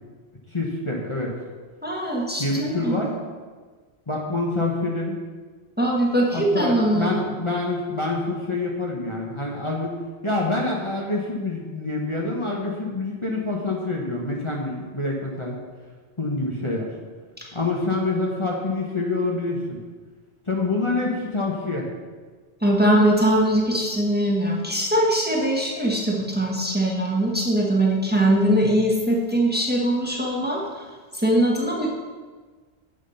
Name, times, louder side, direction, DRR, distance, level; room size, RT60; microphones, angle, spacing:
voice 1, 0.5-1.3 2.4-3.1 4.1-5.2 6.3-9.9 10.2-15.6 16.2-16.9 17.5-19.8 20.5-21.9, left 2 dB, 30° left, -2 dB, 1.2 m, -26 dB
voice 2, 1.8-3.0 5.8-7.2 17.4-17.5 22.6-30.8 31.1-31.9, right 1 dB, 10° right, -2 dB, 1.4 m, -21 dB
7.9 x 7.1 x 5.7 m, 1.4 s
omnidirectional pair, 1.1 m